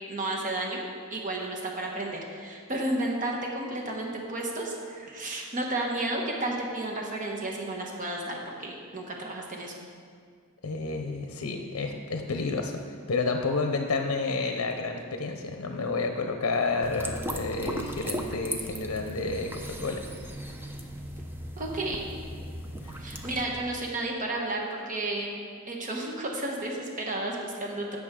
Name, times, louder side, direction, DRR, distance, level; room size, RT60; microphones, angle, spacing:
voice 1, 0.1-9.8 21.6-22.0 23.0-25.4 25.6-28.0, right 2 dB, 40° right, -1 dB, 1.2 m, -32 dB
voice 2, 10.6-12.8 13.1-20.0 22.8-23.0, left 3 dB, 75° left, 4 dB, 0.7 m, -30 dB
sound 1, 16.8-23.5, equal, 10° right, 0.7 m, -37 dB
17.0 x 6.1 x 3.7 m, 2.1 s
head